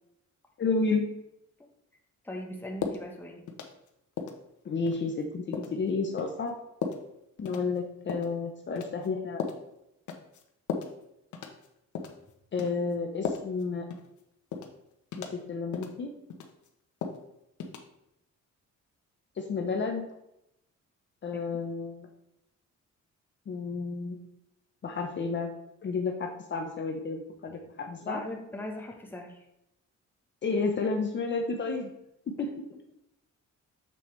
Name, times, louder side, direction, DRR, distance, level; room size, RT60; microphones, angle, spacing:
voice 1, 0.6-1.1 4.6-6.5 7.4-9.4 12.5-13.9 15.2-16.1 19.4-20.1 21.2-22.1 23.5-24.2 24.8-25.5 25.8-28.2 30.4-31.9 32.3-32.5, left 4 dB, 40° left, 3 dB, 0.8 m, -31 dB
voice 2, 2.2-3.5 21.3-21.4 28.0-29.5 32.4-32.5, left 1 dB, 5° left, 1 dB, 1.0 m, -39 dB
sound 1, 2.8-3.0 3.5-3.9 4.2-4.4 4.9-5.0 5.5-5.8 6.2-6.3 6.8-7.0 7.5-7.7 8.1-8.3 8.8-9.1 9.4-9.6 10.1-10.4 10.7-10.9 11.3-11.7 11.9-12.2 12.6-12.7 13.2-13.6 13.9-14.0 14.5-14.7 15.1-15.4 15.7-15.9 16.3-16.7 17.0-17.2 17.6-17.8, left 6 dB, 90° left, 1.0 m, -35 dB
7.0 x 6.4 x 3.2 m, 0.85 s
cardioid pair, 145°, 29 cm